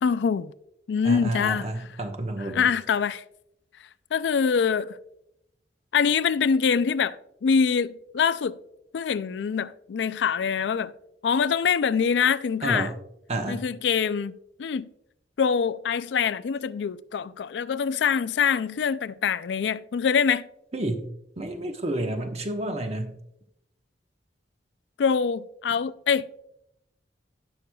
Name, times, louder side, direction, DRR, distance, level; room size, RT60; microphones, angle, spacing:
voice 1, 0.0-0.5 0.9-1.7 2.5-3.2 4.1-5.0 5.9-8.6 8.9-10.9 11.2-12.9 13.5-14.9 15.4-20.4 25.0-26.4, left 6 dB, 80° left, 0.4 m, -24 dB
voice 2, 1.0-2.7 12.6-12.9 13.3-13.6 20.7-21.1 21.4-23.1, right 1 dB, 40° right, 1.1 m, -30 dB
17.0 x 6.3 x 2.3 m
head